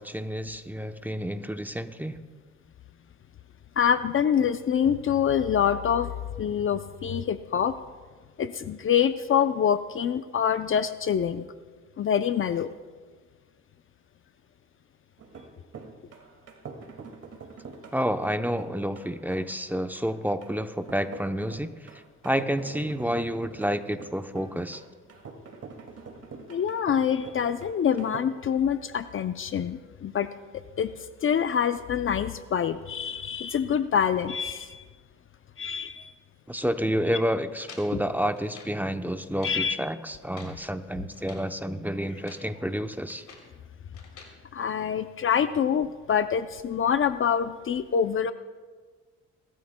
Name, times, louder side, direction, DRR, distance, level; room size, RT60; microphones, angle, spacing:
voice 1, 0.0-2.1 17.9-21.7 22.2-24.8 36.5-43.2, equal, 5° right, 8 dB, 0.7 m, -29 dB
voice 2, 3.8-6.1 6.4-7.8 8.4-11.5 12.0-12.7 26.5-30.3 30.8-30.9 31.2-34.8 35.6-36.1 37.9-38.0 39.4-39.8 44.5-48.3, left 8 dB, 45° left, 12 dB, 0.5 m, -25 dB
sound 1, 15.2-28.2, right 4 dB, 55° right, 2.0 m, -45 dB
sound 2, 37.6-38.8 39.2-39.7 40.1-40.6 41.1-41.5 42.1-42.5 42.8-43.5 43.9-44.4, left 4 dB, 70° left, 3.3 m, -49 dB
29.5 x 13.0 x 2.2 m, 1.5 s
cardioid pair, 90°, 30 cm